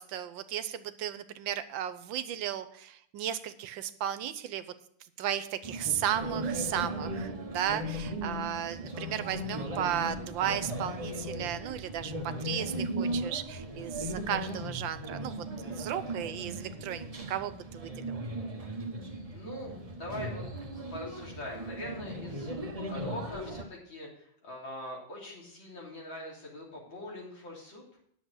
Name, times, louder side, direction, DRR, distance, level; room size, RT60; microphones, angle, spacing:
voice 1, 0.0-4.6 5.2-18.2, right 10 dB, 80° right, 12 dB, 1.5 m, -35 dB
sound 1, 5.6-23.6, right 1 dB, 25° right, 1.1 m, -37 dB
voice 2, 19.3-20.5 20.7-22.6 22.9-27.8, left 1 dB, 80° left, -3 dB, 4.2 m, -42 dB
10.5 x 7.1 x 6.3 m, 0.68 s
omnidirectional pair, 2.1 m